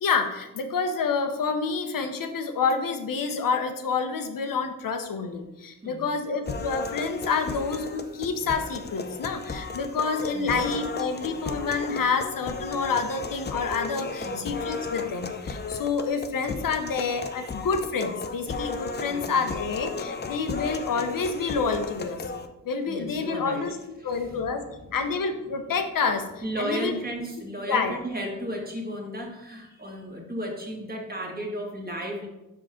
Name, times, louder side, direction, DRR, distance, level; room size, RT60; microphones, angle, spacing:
voice 1, 0.0-22.2 22.6-23.8 24.0-24.6 24.9-26.3 26.6-27.0 27.7-28.0, left 5 dB, 70° left, 7 dB, 0.8 m, -28 dB
sound 1, 6.5-22.5, left 4 dB, 30° left, 0.5 m, -35 dB
voice 2, 10.3-10.6 14.2-14.5 19.0-19.5 22.9-23.7 24.0-24.5 24.8-25.0 26.4-32.3, equal, 25° right, -1 dB, 1.7 m, -34 dB
5.6 x 5.2 x 3.7 m, 0.96 s
cardioid pair, 65°, 34 cm